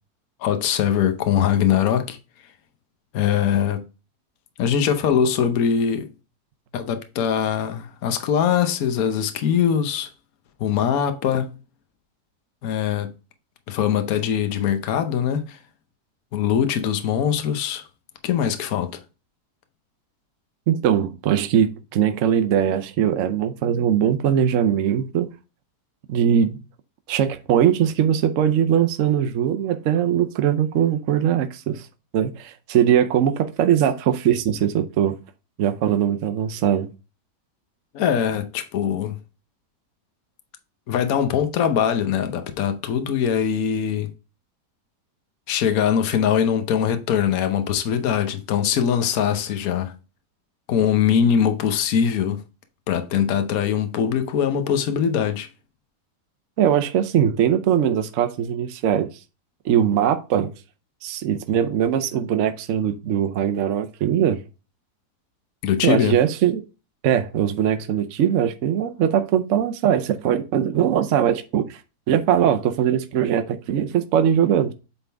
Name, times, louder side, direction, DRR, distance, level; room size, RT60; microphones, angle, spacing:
voice 1, 0.4-2.2 3.1-3.8 4.6-6.1 6.7-10.1 10.6-11.5 12.6-13.1 13.7-15.6 16.3-17.9 18.2-19.0 37.9-39.2 40.9-44.1 45.5-49.9 50.7-52.4 52.9-55.5 65.6-66.2, left 8 dB, 65° left, 1.2 m, -22 dB
voice 2, 20.7-25.3 26.1-26.6 27.1-31.9 32.1-35.1 35.6-36.9 56.6-59.1 59.6-60.5 61.0-64.4 65.8-66.6 67.0-71.8 72.1-74.7, right 9 dB, 60° right, 0.9 m, -21 dB
8.3 x 3.8 x 3.4 m
omnidirectional pair, 1.8 m